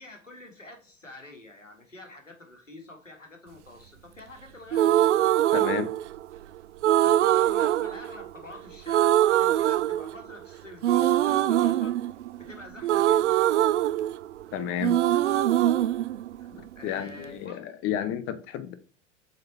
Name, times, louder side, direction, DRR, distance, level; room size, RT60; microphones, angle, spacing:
voice 1, 0.0-5.0 7.0-12.0 12.4-13.3 16.4-17.6, left 2 dB, 90° left, 3 dB, 1.7 m, -46 dB
sound 1, 4.7-6.4 6.8-8.6 8.9-10.4 10.8-14.5 14.8-16.9, right 12 dB, 70° right, 0.5 m, -23 dB
voice 2, 5.5-5.9 14.5-14.9 16.5-18.7, left 10 dB, 35° left, 11 dB, 0.8 m, -32 dB
7.6 x 4.1 x 4.4 m, 0.38 s
figure-of-eight pair, 85°, 37 cm